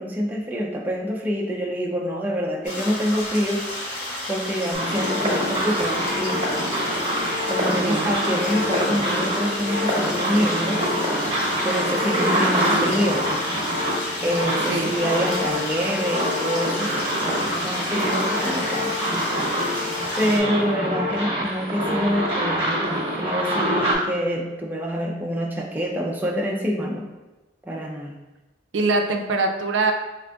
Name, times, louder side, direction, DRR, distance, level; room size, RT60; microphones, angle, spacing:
voice 1, 0.0-3.6 4.3-6.5 7.5-10.8 11.6-13.2 14.2-18.9 20.2-27.1 27.7-28.2, equal, 10° right, -1 dB, 0.4 m, -26 dB
sound 1, 2.6-20.4, left 1 dB, 60° left, 1.1 m, -31 dB
sound 2, 4.7-23.9, equal, 30° right, 1.1 m, -25 dB
voice 2, 12.5-12.9 14.7-14.9 20.3-20.7 28.7-29.9, right 3 dB, 75° right, 3 dB, 0.4 m, -24 dB
3.8 x 3.4 x 2.2 m, 1.1 s
head